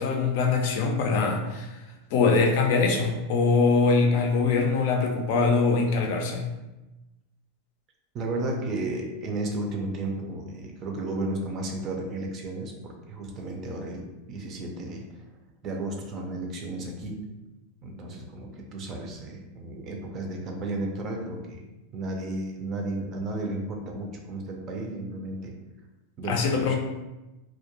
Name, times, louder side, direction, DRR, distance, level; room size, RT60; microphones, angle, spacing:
voice 1, 0.0-1.7 2.1-6.5 26.3-26.8, left 4 dB, 65° left, 2 dB, 0.4 m, -23 dB
voice 2, 8.1-15.0 15.6-17.2 17.8-21.6 21.9-25.5 26.2-26.8, right 2 dB, 35° right, 1 dB, 0.5 m, -33 dB
2.2 x 2.1 x 2.8 m, 1.0 s
supercardioid pair, 130°, 0 cm